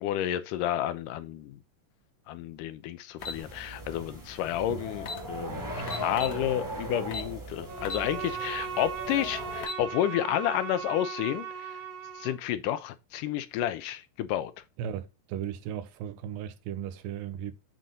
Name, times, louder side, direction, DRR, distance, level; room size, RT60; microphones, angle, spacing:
voice 1, 0.0-1.6 2.3-11.8 12.2-14.5, left 12 dB, 80° left, 2.1 m, -31 dB
sound 1, 3.2-3.4 4.6-4.7 5.0-5.2 5.9-6.4 7.1-7.3 7.8-8.1 8.5-8.6 9.4-9.8, left 3 dB, 60° left, 1.7 m, -36 dB
sound 2, 3.2-9.6, equal, 10° right, 1.2 m, -38 dB
Bowed string instrument, 7.7-12.5, right 7 dB, 50° right, 2.0 m, -38 dB
voice 2, 14.8-17.5, right 9 dB, 85° right, 2.5 m, -36 dB
7.7 x 4.0 x 5.2 m
omnidirectional pair, 3.9 m